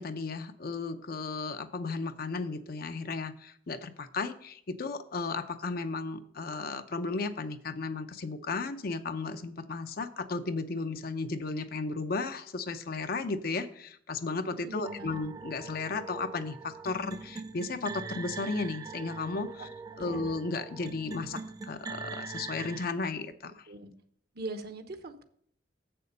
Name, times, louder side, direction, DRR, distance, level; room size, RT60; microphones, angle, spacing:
voice 1, 0.0-19.7 20.0-23.7, left 3 dB, 55° left, 9 dB, 0.6 m, -34 dB
voice 2, 14.7-15.2 19.6-19.7 19.9-20.3 23.7-23.9 24.3-25.2, right 2 dB, 55° right, 8 dB, 1.0 m, -41 dB
sound 1, 14.9-22.9, right 4 dB, 20° right, 0.3 m, -42 dB
7.4 x 6.8 x 5.3 m, 0.64 s
head